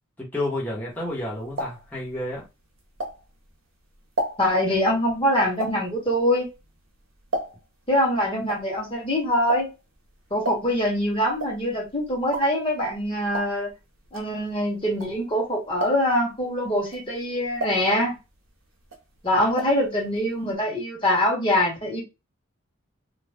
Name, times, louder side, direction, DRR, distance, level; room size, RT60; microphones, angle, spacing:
voice 1, 0.2-2.4, left 1 dB, 10° left, 1.0 m, -30 dB
sound 1, 1.0-3.6 3.9-7.9 8.1-15.4 15.7-16.3 16.8-18.5 18.8-19.9 20.1-20.2 20.5-20.6, right 1 dB, 65° right, 0.9 m, -34 dB
voice 2, 4.4-6.5 7.9-9.7 10.3-13.7 14.1-18.1 19.2-22.0, left 1 dB, 25° left, 1.3 m, -24 dB
2.6 x 2.2 x 3.4 m
head